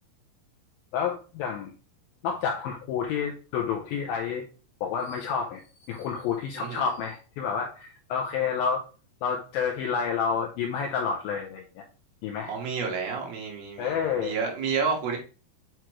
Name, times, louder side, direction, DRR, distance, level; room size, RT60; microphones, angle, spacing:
voice 1, 0.9-1.7 2.2-4.5 4.8-8.8 9.2-11.8 12.2-12.5 13.8-14.4, left 6 dB, 80° left, 1 dB, 2.3 m, -29 dB
voice 2, 12.5-15.2, right 5 dB, 70° right, 0 dB, 3.3 m, -30 dB
7.9 x 4.6 x 3.1 m, 0.35 s
omnidirectional pair, 4.6 m